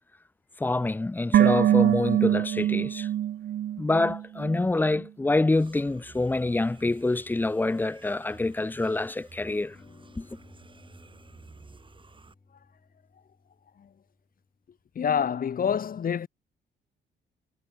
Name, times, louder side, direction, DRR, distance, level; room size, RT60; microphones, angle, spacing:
voice 1, 0.6-3.1 3.8-9.8 10.2-10.3, left 2 dB, 10° left, 0.4 m, -26 dB
sound 1, 1.3-4.6 4.9-5.0, right 11 dB, 55° right, 0.5 m, -24 dB
sound 2, 5.5-12.3, right 4 dB, 25° right, 3.3 m, -52 dB
sound 3, 9.7-14.9, left 3 dB, 25° left, 5.5 m, -58 dB
voice 2, 14.9-16.3, left 8 dB, 45° left, 1.2 m, -27 dB
cardioid pair, 90°, 20 cm